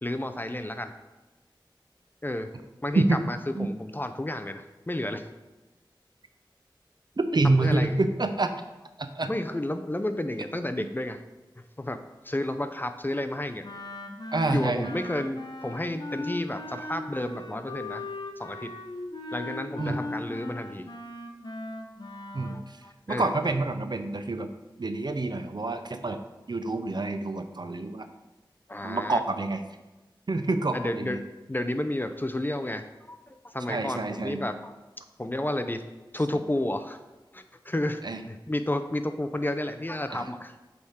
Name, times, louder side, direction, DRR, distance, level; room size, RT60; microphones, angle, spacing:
voice 1, 0.0-0.9 2.2-2.5 2.8-5.3 7.4-8.0 9.3-11.2 11.6-12.0 12.2-13.7 14.5-18.0 18.4-18.7 19.3-20.9 22.4-23.3 28.7-29.2 30.7-34.8 35.2-35.8 36.1-37.0 37.3-38.0 38.3-40.5, left 1 dB, 25° left, 8 dB, 0.5 m, -31 dB
voice 2, 7.2-8.5 9.0-9.3 14.3-15.0 19.8-20.0 22.3-22.6 23.1-24.5 24.8-26.2 26.5-28.1 28.8-29.6 30.3-31.2 33.7-34.5 38.0-38.2 40.1-40.2, right 2 dB, 55° right, 8 dB, 0.5 m, -27 dB
Wind instrument woodwind instrument, 13.6-22.6, left 2 dB, 55° left, 0.9 m, -38 dB
7.9 x 3.6 x 4.3 m, 1.1 s
wide cardioid pair, 45°, 9 cm